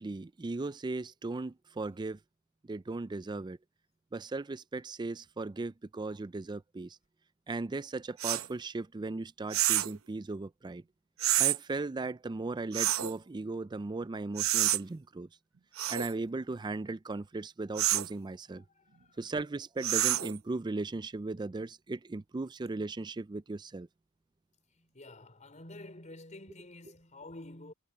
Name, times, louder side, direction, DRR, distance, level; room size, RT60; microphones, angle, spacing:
voice 1, 0.0-2.2 2.6-3.6 4.1-7.0 7.5-10.8 11.4-15.3 15.9-18.6 19.2-23.9, right 3 dB, 20° right, 0.4 m, -37 dB
sound 1, 8.2-8.5 9.5-10.0 11.2-11.6 12.7-13.1 14.4-14.8 15.8-16.1 17.8-18.1 19.8-20.4, right 14 dB, 80° right, 0.8 m, -28 dB
voice 2, 18.5-19.2 24.7-27.7, left 2 dB, 35° left, 4.2 m, -49 dB
head